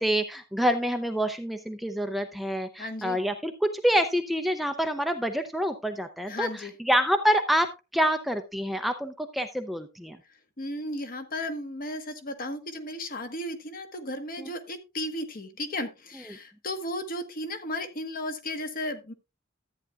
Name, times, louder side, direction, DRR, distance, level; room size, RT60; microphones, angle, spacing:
voice 1, 0.0-10.2 14.4-14.5, equal, ahead, 7 dB, 0.5 m, -27 dB
voice 2, 2.8-3.2 6.3-6.7 10.6-19.1, left 1 dB, 45° left, 8 dB, 1.2 m, -34 dB
13.5 x 9.0 x 2.4 m, 0.26 s
head